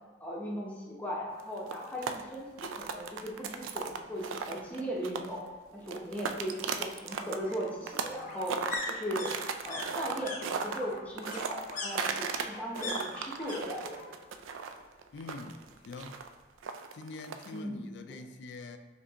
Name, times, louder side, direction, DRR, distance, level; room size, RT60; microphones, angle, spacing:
voice 1, 0.2-5.4 5.7-8.5 8.9-9.3 9.6-14.0 17.5-17.8, equal, 10° left, -4 dB, 0.7 m, -38 dB
sound 1, 1.4-5.5 5.8-8.2 8.4-12.5 12.7-17.6, right 6 dB, 80° right, 0.3 m, -36 dB
sound 2, 2.7-2.8 3.2-3.3 3.5-4.5 5.8-13.6 13.9-14.4 14.7-15.7 16.0-16.1, left 2 dB, 40° left, 0.7 m, -42 dB
voice 2, 15.1-16.3 16.9-18.8, left 3 dB, 60° left, 8 dB, 0.3 m, -44 dB
5.0 x 3.3 x 2.8 m, 1.4 s
head